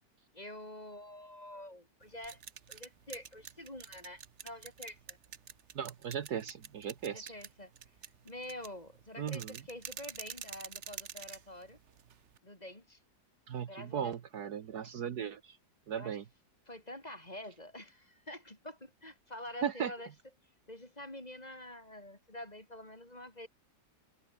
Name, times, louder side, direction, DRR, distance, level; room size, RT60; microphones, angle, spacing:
voice 1, 0.3-2.4 2.7-5.2 7.0-7.7 8.2-11.8 12.4-13.0 13.7-14.2 16.0-16.2 16.7-20.1 20.7-23.5, left 1 dB, 20° left, 4.5 m, -47 dB
sound 1, 2.0-12.4, right 8 dB, 45° right, 1.1 m, -48 dB
voice 2, 5.7-7.3 9.2-9.6 13.5-15.6 15.9-16.2 19.6-19.9, right 8 dB, 65° right, 1.6 m, -37 dB
omnidirectional pair, 1.9 m